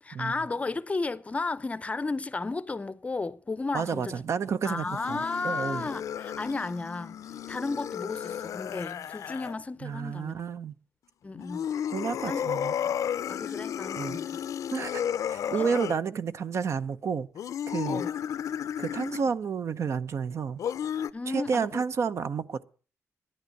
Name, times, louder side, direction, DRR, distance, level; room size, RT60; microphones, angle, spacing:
voice 1, 0.0-4.2 4.6-7.2 7.5-10.4 11.2-11.7 12.2-12.4 12.8-12.9 13.3-14.4 15.6-15.7 17.9-18.1 21.1-21.8, left 3 dB, 25° left, 0.6 m, -33 dB
voice 2, 3.7-5.9 9.8-10.7 11.9-12.7 13.9-14.2 14.7-15.0 15.3-17.3 17.7-18.0 18.8-20.6 21.3-22.6, right 6 dB, 60° right, 0.7 m, -30 dB
sound 1, 4.7-9.6 11.3-16.0 17.3-19.3 20.6-21.1, left 9 dB, 80° left, 0.5 m, -33 dB
11.0 x 10.5 x 6.5 m
wide cardioid pair, 130°, 6 cm